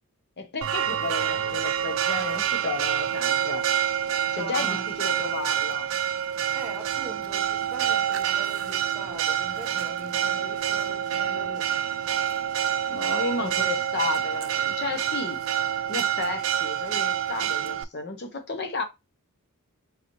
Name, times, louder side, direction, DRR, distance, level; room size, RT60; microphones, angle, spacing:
voice 1, 0.4-3.7 4.3-5.9 12.9-15.4 15.9-18.8, left 3 dB, 50° left, 0.8 m, -33 dB
Church bell, 0.6-17.8, right 9 dB, 60° right, 0.3 m, -27 dB
voice 2, 4.3-4.9 6.5-11.7 13.4-13.6, equal, 5° right, 1.0 m, -42 dB
4.0 x 2.7 x 2.9 m
head